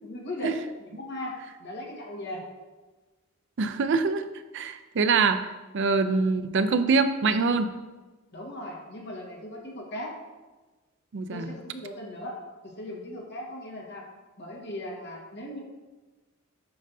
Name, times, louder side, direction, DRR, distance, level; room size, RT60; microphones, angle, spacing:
voice 1, 0.0-2.4 8.3-10.1 11.3-12.4 12.6-14.1 14.4-15.6, left 1 dB, 55° left, -2 dB, 1.5 m, -38 dB
voice 2, 3.6-4.2 4.5-5.5 5.7-7.7 11.1-11.5, right 4 dB, 60° right, 10 dB, 0.4 m, -24 dB
8.6 x 5.3 x 2.7 m, 1.2 s
head